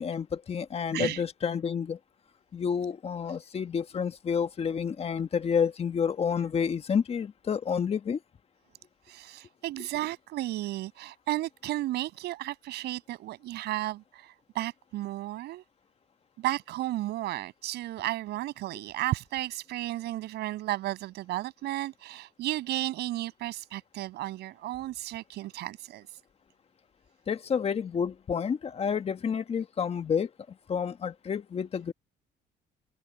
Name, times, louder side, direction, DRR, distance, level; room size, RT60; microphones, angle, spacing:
voice 1, 0.0-2.0 2.5-8.2 27.3-30.3 30.7-31.9, left 7 dB, 35° left, 1.5 m, -29 dB
voice 2, 0.9-1.3 9.1-15.6 16.4-26.1, right 16 dB, 80° right, 7.8 m, -33 dB
cardioid pair, 110°, 17 cm